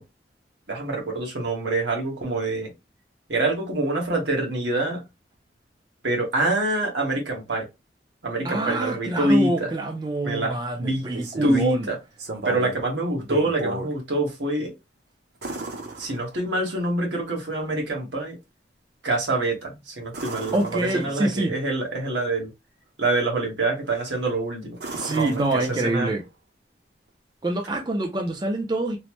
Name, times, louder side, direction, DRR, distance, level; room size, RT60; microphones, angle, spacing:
voice 1, 0.7-2.7 3.3-5.0 6.0-7.7 8.2-9.7 10.2-11.1 11.4-12.0 12.4-14.7 16.0-18.4 19.0-22.5 23.0-24.8 25.1-26.1, right 2 dB, 80° right, 1.2 m, -26 dB
voice 2, 8.4-11.9 20.5-21.5 24.9-26.2 27.4-29.0, right 2 dB, 25° right, 0.4 m, -25 dB
sound 1, 10.9-11.7 12.2-12.8 13.2-13.9 15.4-16.7 20.1-21.4 23.9-24.3 24.8-26.2 28.3-28.4, right 2 dB, 60° right, 0.8 m, -35 dB
3.0 x 2.0 x 3.0 m
head